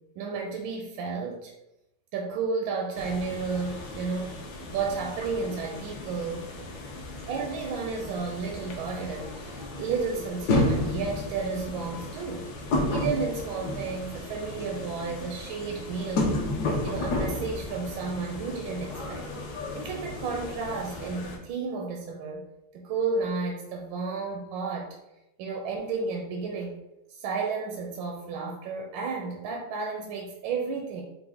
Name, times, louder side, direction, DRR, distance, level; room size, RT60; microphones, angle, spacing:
voice 1, 0.2-1.5 2.1-4.4 4.7-6.4 7.3-16.4 16.8-19.3 19.7-22.4 22.7-24.9 25.4-26.8 27.1-31.0, right 4 dB, 75° right, 1 dB, 1.3 m, -32 dB
sound 1, 3.0-21.4, left 2 dB, 65° left, 1.1 m, -33 dB
5.7 x 2.1 x 3.5 m, 0.92 s
omnidirectional pair, 2.3 m